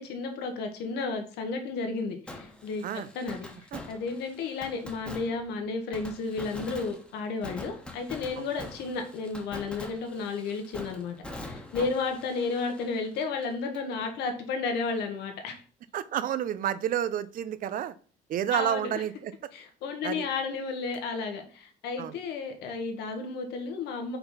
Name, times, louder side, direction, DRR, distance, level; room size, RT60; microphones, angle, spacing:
voice 1, 0.0-15.6 18.5-18.9 19.5-24.2, left 4 dB, 80° left, 5 dB, 1.5 m, -33 dB
Fireworks, 2.3-13.9 14.2-14.3 20.9-21.0, left 1 dB, 5° left, 1.4 m, -44 dB
voice 2, 15.9-17.9 18.3-19.3 20.0-20.3 22.0-22.1, right 10 dB, 55° right, 15 dB, 0.6 m, -30 dB
5.6 x 4.0 x 5.5 m, 0.41 s
cardioid pair, 110°, 17 cm